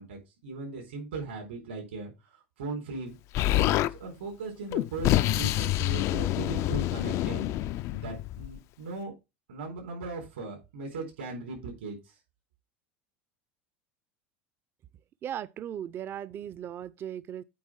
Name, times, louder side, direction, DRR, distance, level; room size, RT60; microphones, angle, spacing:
voice 1, 0.0-2.1 2.6-3.2 3.4-7.5 7.9-9.1 9.5-12.0, right 3 dB, 90° right, 4.2 m, -38 dB
Explosion, 3.3-3.9 4.7-8.6, left 15 dB, 55° left, 0.5 m, -27 dB
voice 2, 15.2-17.4, right 10 dB, 40° right, 0.6 m, -37 dB
8.6 x 3.7 x 6.3 m
supercardioid pair, 100°, 6 cm